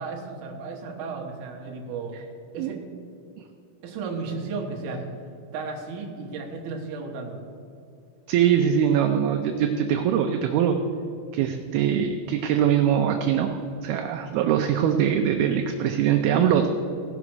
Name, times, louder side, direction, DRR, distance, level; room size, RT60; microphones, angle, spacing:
voice 1, 0.0-2.2 2.5-2.8 3.8-5.0 5.5-7.4, right 4 dB, 60° right, 1 dB, 2.3 m, -34 dB
voice 2, 8.3-10.8 11.3-16.7, right 9 dB, 80° right, 5 dB, 2.3 m, -22 dB
17.0 x 6.0 x 6.1 m, 2.7 s
omnidirectional pair, 4.9 m